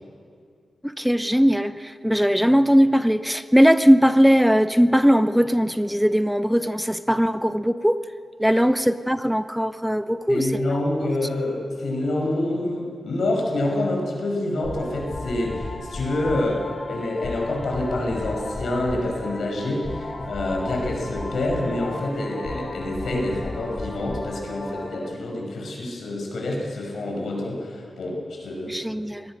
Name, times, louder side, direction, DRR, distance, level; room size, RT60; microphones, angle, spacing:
voice 1, 0.8-8.0 8.4-11.1 28.7-29.3, equal, ahead, 12 dB, 0.5 m, -19 dB
voice 2, 10.3-28.8, left 1 dB, 80° left, 0 dB, 5.7 m, -27 dB
sound 1, 14.6-25.1, left 2 dB, 40° left, 2.3 m, -35 dB
23.5 x 18.0 x 6.4 m, 2.2 s
wide cardioid pair, 95°, 0 cm